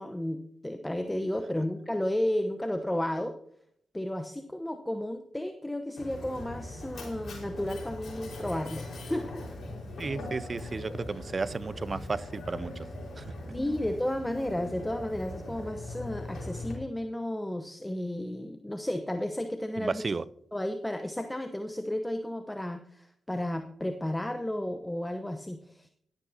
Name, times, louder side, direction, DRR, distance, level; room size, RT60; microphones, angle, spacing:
voice 1, 0.0-3.4 3.9-9.4 13.5-20.0 20.5-25.9, left 1 dB, 10° left, 0.9 m, -33 dB
Mechanisms, 6.0-16.7, left 1 dB, 65° left, 4.7 m, -40 dB
voice 2, 10.0-12.9 13.2-13.3 19.8-20.2, right 4 dB, 45° right, 0.4 m, -33 dB
13.5 x 11.0 x 2.8 m
supercardioid pair, 45°, 0 cm